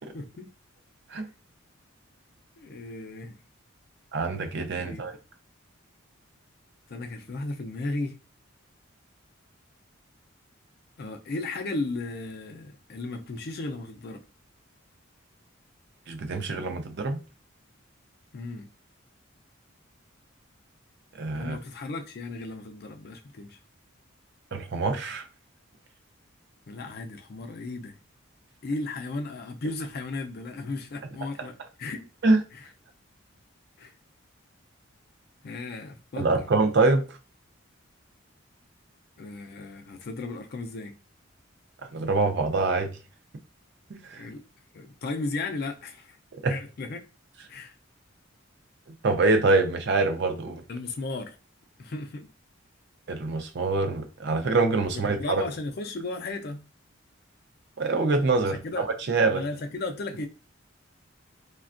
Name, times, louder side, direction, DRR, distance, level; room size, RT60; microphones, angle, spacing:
voice 1, 0.1-0.5 2.6-3.4 4.8-5.1 6.9-8.2 11.0-14.2 18.3-18.7 21.3-23.6 26.7-28.0 28.6-32.1 32.5-32.6 33.8-33.9 35.4-36.3 39.2-41.0 44.2-44.4 44.7-46.2 46.5-47.0 47.5-47.8 50.7-51.4 51.8-52.3 54.9-56.7 58.4-58.9 59.3-60.3, left 2 dB, 50° left, 0.4 m, -35 dB
voice 2, 4.1-5.2 16.1-17.2 21.1-21.6 24.5-25.2 32.2-32.4 36.2-37.0 41.9-42.9 43.9-44.2 46.3-46.5 49.0-50.6 53.1-55.2 57.8-59.4, right 3 dB, 55° right, 0.5 m, -25 dB
3.3 x 2.2 x 2.5 m
head